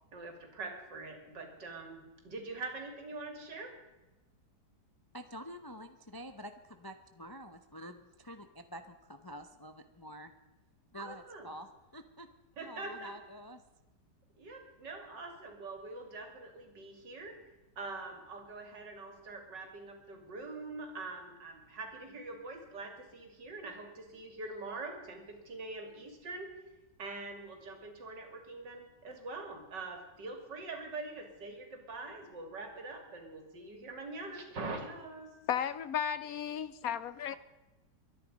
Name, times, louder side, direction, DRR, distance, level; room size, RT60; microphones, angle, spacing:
voice 1, 0.1-3.7 11.0-11.5 12.6-13.1 14.4-17.4 17.8-26.5 27.0-35.3, right 3 dB, 85° right, 4 dB, 3.3 m, -44 dB
voice 2, 5.1-10.3 10.9-12.3 12.6-13.6, equal, 30° left, 8 dB, 0.4 m, -48 dB
voice 3, 35.5-37.4, left 9 dB, 65° left, 15 dB, 1.0 m, -34 dB
23.0 x 10.0 x 5.3 m, 1.1 s
omnidirectional pair, 1.9 m